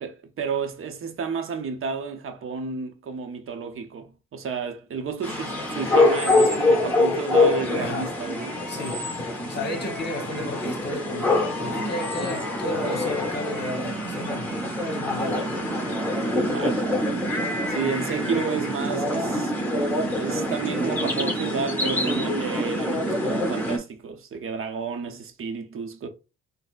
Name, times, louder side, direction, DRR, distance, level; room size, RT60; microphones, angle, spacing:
voice 1, 0.0-8.6 16.4-16.8 17.7-19.5 20.2-26.1, right 5 dB, 45° right, 0.7 m, -31 dB
sound 1, 5.2-23.8, left 1 dB, 5° left, 1.2 m, -25 dB
voice 2, 7.8-8.1 8.7-9.1 9.5-14.6 15.0-15.5, left 1 dB, 35° left, 1.1 m, -33 dB
4.0 x 2.1 x 2.4 m
cardioid pair, 90°, 30 cm